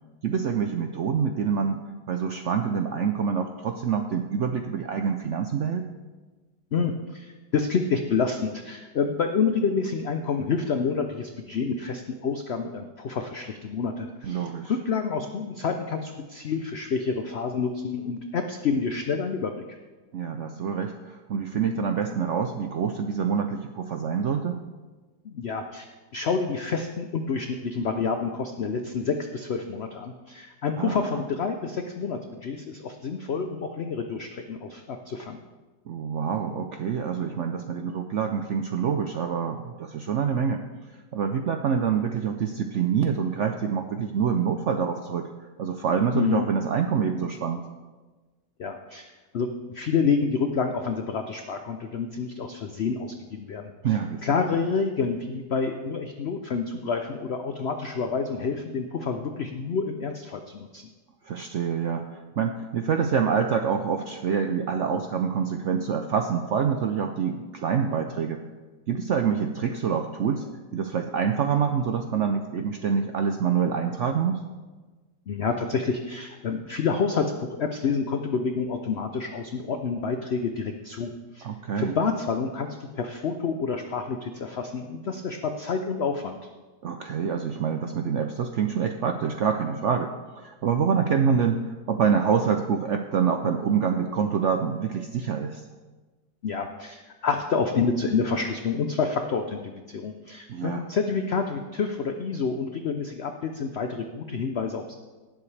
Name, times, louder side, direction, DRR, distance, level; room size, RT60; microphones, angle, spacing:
voice 1, 0.2-1.8 2.1-5.9 14.2-14.7 20.1-24.6 30.8-31.1 35.9-40.6 41.1-45.3 45.6-47.6 53.8-54.2 61.3-68.4 68.9-70.4 70.7-74.4 81.4-82.0 86.8-91.6 91.9-95.6 100.5-100.9, right 7 dB, 75° right, 6 dB, 0.6 m, -26 dB
voice 2, 6.7-19.6 25.2-35.4 46.1-46.4 48.6-60.8 75.3-81.5 81.8-86.4 96.4-104.9, left 5 dB, 70° left, 6 dB, 0.6 m, -28 dB
18.0 x 7.7 x 3.3 m, 1.3 s
omnidirectional pair, 1.9 m